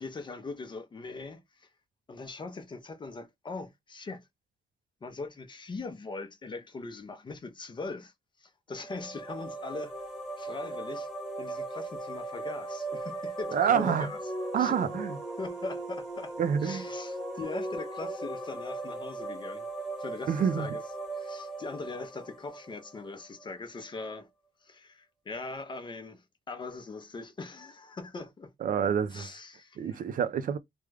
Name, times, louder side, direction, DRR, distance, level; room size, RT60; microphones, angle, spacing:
voice 1, 0.0-1.7 2.1-4.3 5.0-8.1 8.4-10.1 10.4-11.1 11.4-14.2 14.6-14.8 15.4-16.3 16.6-19.7 20.0-20.8 21.1-24.3 24.6-28.5 29.1-30.0, left 3 dB, 25° left, 0.5 m, -41 dB
sound 1, 8.7-23.4, right 2 dB, ahead, 1.2 m, -38 dB
voice 2, 13.5-14.1 14.5-15.2 16.4-16.8 20.3-20.7 28.6-29.3 29.8-30.6, right 8 dB, 55° right, 0.4 m, -27 dB
3.5 x 2.1 x 3.2 m
wide cardioid pair, 170°, 17 cm